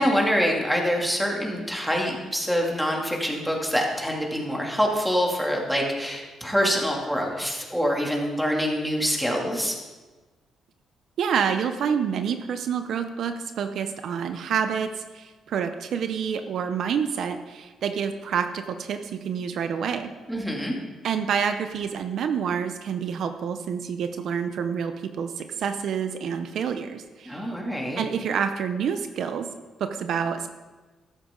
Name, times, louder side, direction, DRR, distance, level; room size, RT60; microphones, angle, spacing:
voice 1, 0.0-9.8 20.3-20.7 27.3-28.0, equal, ahead, -1 dB, 2.7 m, -25 dB
voice 2, 11.2-20.1 21.0-27.5 28.0-29.5 29.8-30.5, right 7 dB, 70° right, 8 dB, 0.7 m, -28 dB
14.0 x 11.0 x 3.9 m, 1.3 s
cardioid pair, 90°, 0 cm